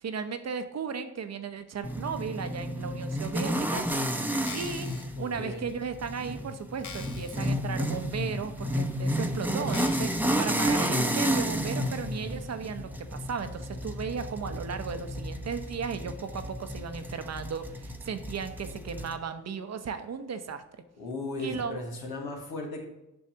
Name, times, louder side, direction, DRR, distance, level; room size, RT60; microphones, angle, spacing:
voice 1, 0.0-3.9 4.5-4.9 5.2-20.6 21.4-21.8, right 6 dB, 45° right, 9 dB, 0.8 m, -35 dB
sound 1, 1.8-19.2, equal, 5° right, 0.8 m, -31 dB
sound 2, 4.3-5.0 5.7-5.8 6.3-6.4 6.8-7.5 7.9-8.0 8.8-8.9 9.7-10.4 10.9-11.0, left 6 dB, 55° left, 0.9 m, -44 dB
voice 2, 5.2-5.7 21.0-22.8, left 2 dB, 80° left, -1 dB, 1.7 m, -36 dB
7.8 x 6.2 x 2.9 m, 0.92 s
hypercardioid pair, 40°, 36 cm